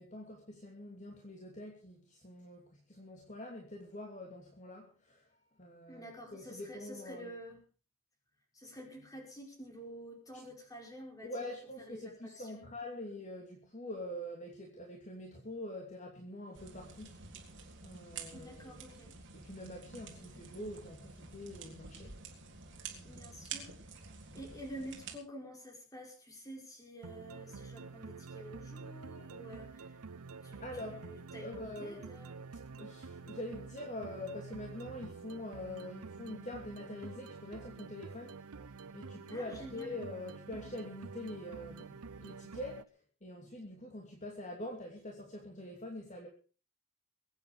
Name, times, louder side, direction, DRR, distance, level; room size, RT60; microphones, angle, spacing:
voice 1, 0.0-5.3 5.6-7.3 11.2-17.2 17.8-18.8 19.3-22.2 22.9-23.2 29.2-29.3 30.6-31.1 31.4-32.0 32.8-38.4 38.9-46.3, left 1 dB, 35° left, 0 dB, 2.8 m, -45 dB
voice 2, 5.9-7.6 8.5-11.5 11.8-12.7 18.3-19.1 20.2-20.3 23.0-23.7 24.3-30.0 30.4-32.4 39.3-40.0, equal, 15° left, 2 dB, 5.0 m, -49 dB
sound 1, 16.5-25.2, right 5 dB, 55° right, 3.9 m, -49 dB
sound 2, 27.0-42.8, right 4 dB, 85° right, 0.8 m, -48 dB
23.0 x 9.3 x 4.9 m, 0.37 s
head